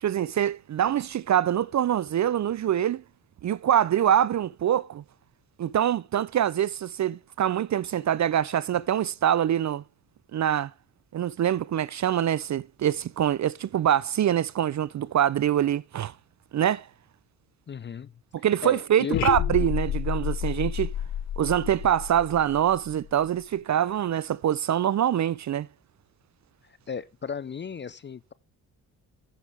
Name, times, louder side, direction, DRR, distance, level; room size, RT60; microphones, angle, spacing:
voice 1, 0.0-3.0 3.4-5.0 5.6-9.8 10.3-10.7 11.1-16.1 16.5-16.9 18.4-20.9 21.4-25.7, right 10 dB, 40° right, 0.5 m, -24 dB
voice 2, 17.7-18.1 18.6-19.3 26.7-28.3, left 6 dB, 25° left, 0.5 m, -35 dB
sound 1, 19.1-23.2, left 11 dB, 75° left, 1.2 m, -30 dB
15.0 x 6.5 x 3.5 m
hypercardioid pair, 45°, 46 cm